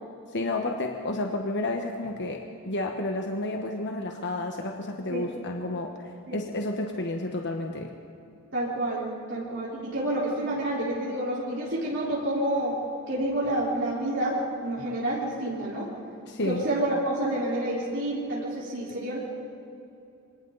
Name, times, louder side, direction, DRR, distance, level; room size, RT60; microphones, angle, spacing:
voice 1, 0.3-5.9 6.3-7.9 16.3-16.6, left 2 dB, 55° left, 3 dB, 1.3 m, -31 dB
voice 2, 8.5-12.8 13.1-15.9 16.4-19.2, right 1 dB, 55° right, -6 dB, 4.4 m, -29 dB
27.5 x 24.0 x 4.1 m, 2.7 s
head